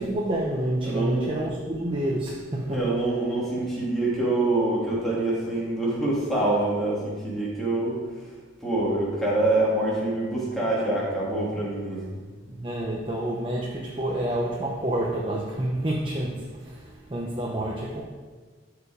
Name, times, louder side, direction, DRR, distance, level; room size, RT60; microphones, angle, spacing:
voice 1, 0.0-2.9 12.5-18.0, right 1 dB, 25° right, 0.9 m, -28 dB
voice 2, 0.8-1.4 2.7-8.3 8.6-12.0, right 2 dB, ahead, 2.6 m, -25 dB
13.0 x 5.0 x 5.0 m
head